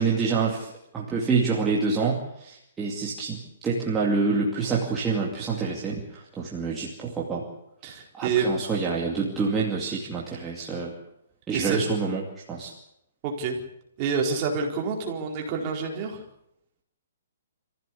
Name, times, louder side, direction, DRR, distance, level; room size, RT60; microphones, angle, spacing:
voice 1, 0.0-7.4 8.1-10.9 11.5-12.2 12.5-12.7, right 4 dB, 10° right, -5 dB, 2.5 m, -27 dB
voice 2, 7.8-8.6 11.5-11.8 13.2-13.6 14.0-16.2, right 5 dB, 25° right, 0 dB, 4.3 m, -27 dB
27.0 x 15.5 x 8.5 m, 0.80 s
hypercardioid pair, 175°, 0 cm